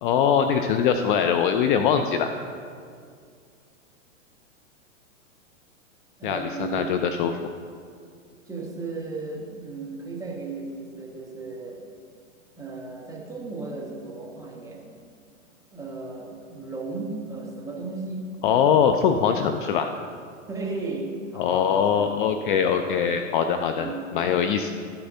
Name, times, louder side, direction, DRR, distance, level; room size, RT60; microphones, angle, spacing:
voice 1, 0.0-2.3 6.2-7.3 18.4-19.9 21.4-24.7, left 7 dB, 40° left, 7 dB, 0.4 m, -22 dB
voice 2, 6.2-6.9 8.5-11.9 12.6-14.9 15.7-18.3 20.5-22.2 22.7-23.0 23.7-24.2 24.6-24.7, right 3 dB, 10° right, -1 dB, 1.1 m, -35 dB
13.0 x 6.8 x 2.7 m, 2.2 s
hypercardioid pair, 125°, 39 cm